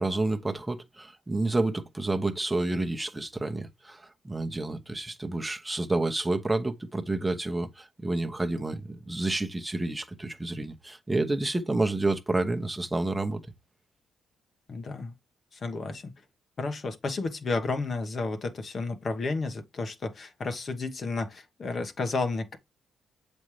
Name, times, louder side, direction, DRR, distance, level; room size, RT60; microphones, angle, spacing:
voice 1, 0.0-13.4, right 2 dB, 15° right, 1.0 m, -29 dB
voice 2, 14.7-15.1 15.5-16.1 16.6-22.6, left 3 dB, 45° left, 1.2 m, -32 dB
7.2 x 5.2 x 3.2 m
cardioid pair, 90°, 0 cm